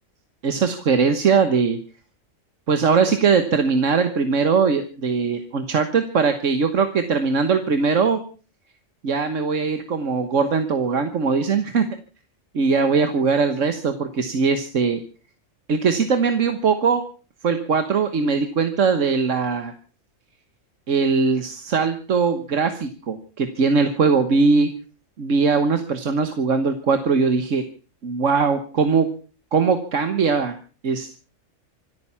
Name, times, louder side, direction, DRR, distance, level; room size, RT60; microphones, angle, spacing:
voice 1, 0.4-1.8 2.7-8.2 9.0-11.8 12.5-15.0 15.7-17.0 17.4-19.7 20.9-24.7 25.2-27.6 28.0-29.1 29.5-30.5 30.8-31.2, right 5 dB, 70° right, 9 dB, 1.6 m, -20 dB
26.0 x 9.3 x 5.7 m, 0.39 s
omnidirectional pair, 1.3 m